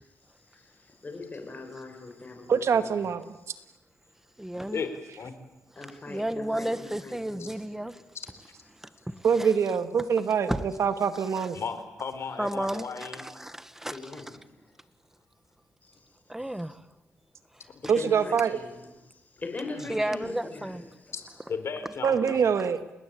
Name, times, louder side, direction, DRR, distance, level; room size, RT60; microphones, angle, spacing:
voice 1, 0.5-2.9 5.8-7.5 13.9-14.3 15.8-16.0 17.8-18.9 19.4-20.7, left 3 dB, 30° left, 6.6 m, -40 dB
voice 2, 2.5-3.3 9.2-10.5 10.8-11.6 17.9-18.6 22.0-22.8, right 6 dB, 65° right, 2.1 m, -24 dB
voice 3, 4.4-4.8 6.1-7.9 9.4-9.5 10.5-10.7 11.4-11.5 12.4-13.5 13.8-14.0 16.3-16.7 19.9-20.8 22.3-22.7, right 1 dB, 5° right, 1.5 m, -32 dB
voice 4, 11.5-13.2 19.7-19.9 21.1-22.5, left 6 dB, 60° left, 4.2 m, -35 dB
29.0 x 20.5 x 8.7 m
cardioid pair, 90°, 5 cm